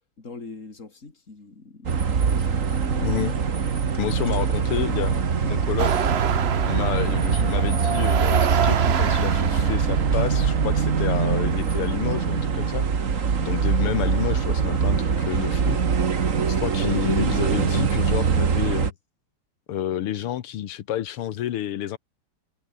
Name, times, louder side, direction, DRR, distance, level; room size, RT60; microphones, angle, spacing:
voice 1, 0.2-1.9 2.3-3.4 4.6-4.9 16.4-16.5, left 3 dB, 35° left, 3.7 m, -43 dB
sound 1, 1.8-18.9, right 6 dB, 40° right, 1.8 m, -23 dB
voice 2, 3.0-3.3 4.0-6.1 6.7-12.9 13.4-16.2 16.5-18.9 19.7-22.0, left 11 dB, 85° left, 2.0 m, -29 dB
sound 2, 5.8-11.5, right 8 dB, 75° right, 0.5 m, -28 dB
omnidirectional pair, 2.4 m